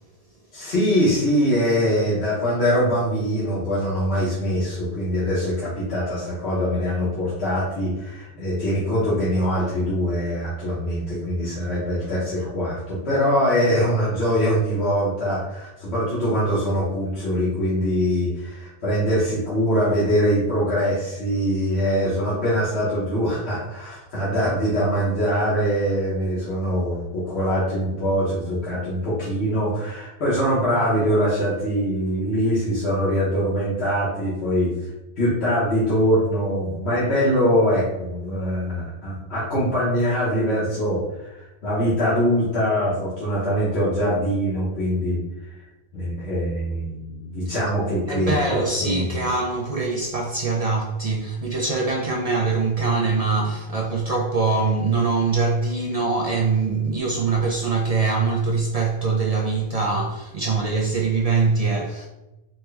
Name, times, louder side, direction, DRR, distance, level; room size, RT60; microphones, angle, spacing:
voice 1, 0.5-34.7 35.2-45.2 45.9-49.2, equal, 75° left, 1.3 m, -23 dB
voice 2, 48.1-62.1, right 4 dB, 60° right, 0.4 m, -23 dB
4.2 x 2.1 x 3.3 m
omnidirectional pair, 1.1 m